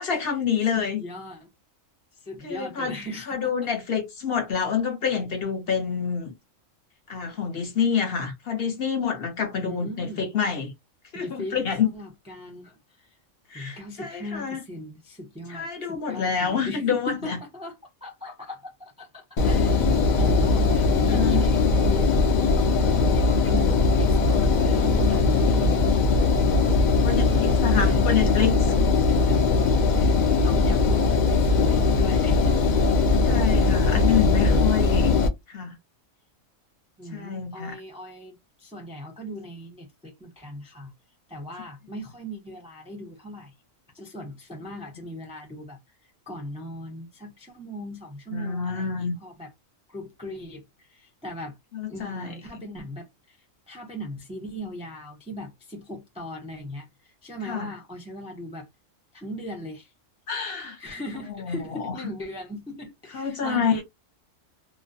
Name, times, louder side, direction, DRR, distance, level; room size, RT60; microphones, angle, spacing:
voice 1, 0.0-1.0 2.4-3.0 3.3-6.3 7.1-10.7 11.1-11.9 13.5-14.6 15.5-17.4 20.9-21.4 27.0-28.5 33.3-35.8 37.1-37.8 48.3-49.1 51.7-52.6 57.4-57.7 60.3-60.8 61.3-61.9 63.1-63.8, left 7 dB, 55° left, 0.9 m, -27 dB
voice 2, 0.7-1.5 2.2-3.5 9.6-10.3 11.1-13.1 13.5-19.7 20.1-22.1 22.6-26.1 27.0-28.5 29.3-29.4 29.7-33.1 37.0-40.9 41.3-43.5 43.9-45.8 46.3-49.5 49.9-51.6 51.9-53.4 53.7-58.7 59.1-59.9 60.8-63.8, equal, 5° right, 0.5 m, -39 dB
Engine, 19.4-35.3, left 4 dB, 75° left, 0.4 m, -20 dB
2.2 x 2.1 x 2.6 m
omnidirectional pair, 1.3 m